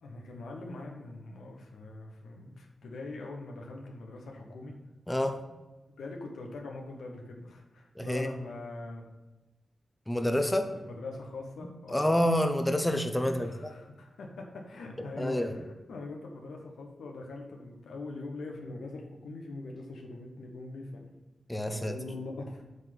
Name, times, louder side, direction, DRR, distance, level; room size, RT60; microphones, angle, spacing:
voice 1, 0.0-4.8 6.0-9.1 10.4-10.6 10.9-12.1 13.3-21.0 21.7-22.6, left 2 dB, 80° left, 1 dB, 1.2 m, -42 dB
voice 2, 5.1-5.4 8.0-8.3 10.1-10.6 11.9-13.7 15.2-15.5 21.5-21.9, left 1 dB, 15° left, 6 dB, 1.0 m, -28 dB
8.1 x 3.9 x 6.0 m, 1.1 s
supercardioid pair, 40°, 0 cm